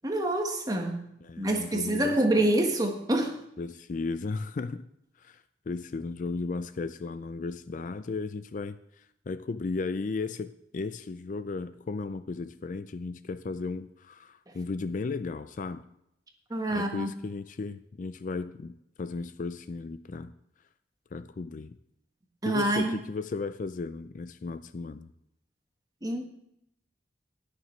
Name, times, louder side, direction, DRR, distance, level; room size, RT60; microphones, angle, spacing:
voice 1, 0.0-1.0 1.4-3.4 14.5-14.6 16.5-17.1 22.4-23.0 26.0-26.3, right 1 dB, 20° right, 3 dB, 1.4 m, -26 dB
voice 2, 1.2-2.2 3.6-4.9 5.2-15.8 16.7-20.3 21.1-21.8 22.4-25.1, left 4 dB, 45° left, 12 dB, 0.4 m, -35 dB
20.0 x 6.6 x 3.2 m, 0.79 s
head